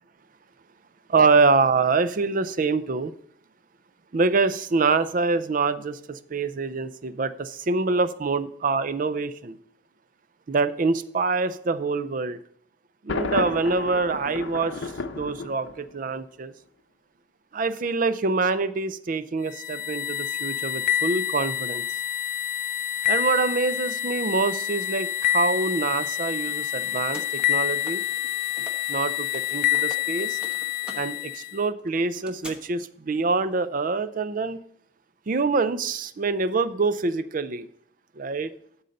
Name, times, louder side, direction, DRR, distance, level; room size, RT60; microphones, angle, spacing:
voice 1, 1.1-3.1 4.1-9.6 10.5-12.4 13.0-16.5 17.5-21.8 23.1-28.0 28.9-30.4 31.0-34.6 35.3-37.7 38.2-38.5, right 4 dB, 45° right, 13 dB, 0.5 m, -25 dB
Thunder, 13.1-16.1, left 3 dB, 65° left, 0.7 m, -32 dB
sound 1, 19.5-31.6, left 12 dB, 40° left, 0.3 m, -27 dB
sound 2, 26.4-29.0 29.2-32.5, equal, 5° right, 1.0 m, -46 dB
11.5 x 4.0 x 5.2 m, 0.70 s
head